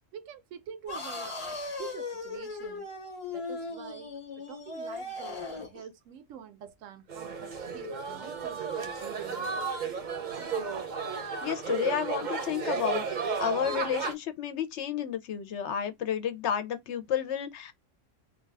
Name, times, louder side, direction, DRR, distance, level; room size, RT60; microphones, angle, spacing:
voice 1, 0.1-2.9 3.3-9.5, right 8 dB, 80° right, 1.0 m, -46 dB
sound 1, 0.9-5.8, left 3 dB, 30° left, 0.7 m, -38 dB
sound 2, 7.1-14.1, right 5 dB, 45° right, 0.7 m, -33 dB
voice 2, 11.4-13.0 13.4-17.7, left 9 dB, 70° left, 0.8 m, -31 dB
2.6 x 2.3 x 3.2 m
omnidirectional pair, 1.3 m